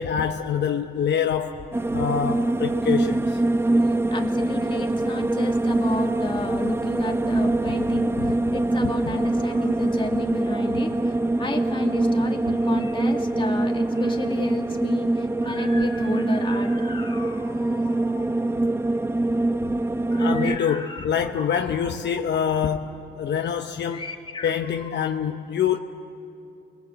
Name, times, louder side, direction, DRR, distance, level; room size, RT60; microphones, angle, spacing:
voice 1, 0.0-1.6 1.9-3.4 8.2-8.3 20.2-24.0 24.4-25.8, left 8 dB, 60° left, 4 dB, 1.0 m, -25 dB
sound 1, 1.7-20.6, right 2 dB, 10° right, 0.6 m, -24 dB
voice 2, 3.9-18.5 20.1-21.1 21.4-21.9 23.9-25.1, left 3 dB, 25° left, 2 dB, 2.4 m, -33 dB
29.0 x 22.0 x 8.2 m, 2.7 s
cardioid pair, 90°, 20 cm